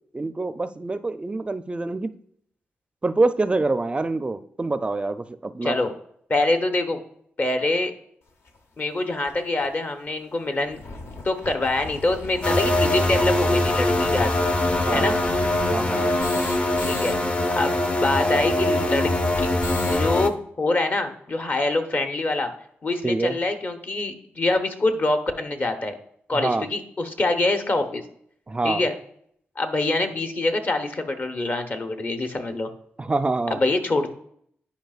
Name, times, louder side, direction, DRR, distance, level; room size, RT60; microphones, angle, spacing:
voice 1, 0.1-2.1 3.0-5.8 14.9-15.1 15.7-16.1 23.0-23.4 26.3-26.7 28.5-28.8 33.0-33.6, right 3 dB, 25° right, 12 dB, 0.4 m, -25 dB
voice 2, 5.6-5.9 6.3-7.0 7.4-7.9 8.8-10.8 11.2-14.3 14.9-15.2 16.8-17.2 17.5-19.1 19.4-19.5 19.9-22.5 22.8-25.9 26.3-28.0 28.6-29.0 29.6-32.7 33.5-34.1, left 2 dB, 45° left, 6 dB, 0.9 m, -25 dB
sound 1, 8.5-8.6 9.3-9.4 9.6-9.7 10.0-10.1 10.5-17.2 17.4-17.5 17.7-20.1, left 3 dB, 75° left, 0.9 m, -38 dB
sound 2, 12.4-20.3, left 1 dB, 25° left, 0.6 m, -22 dB
10.5 x 5.0 x 2.4 m, 0.67 s
cardioid pair, 70°, 4 cm